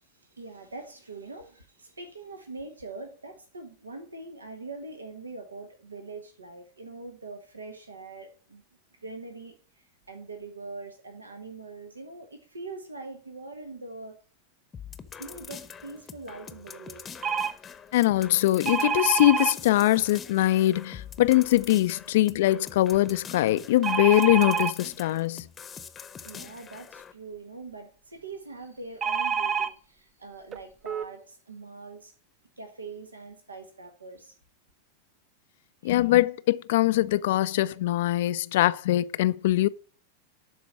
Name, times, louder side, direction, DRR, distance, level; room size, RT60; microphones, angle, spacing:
voice 1, 0.0-8.6 9.0-14.2 15.2-17.2 26.2-32.1 32.6-34.3 35.8-36.1, right 3 dB, 75° right, 1.5 m, -43 dB
sound 1, 14.7-27.1, left 7 dB, 20° left, 0.9 m, -44 dB
sound 2, 17.2-17.5 18.7-19.5 23.8-24.7 29.0-29.7 30.5-30.6 30.9-31.1, right 6 dB, 25° right, 0.8 m, -27 dB
voice 2, 17.9-25.5 35.8-39.7, left 15 dB, 55° left, 0.4 m, -22 dB
12.0 x 4.7 x 7.6 m
figure-of-eight pair, 90°, 0 cm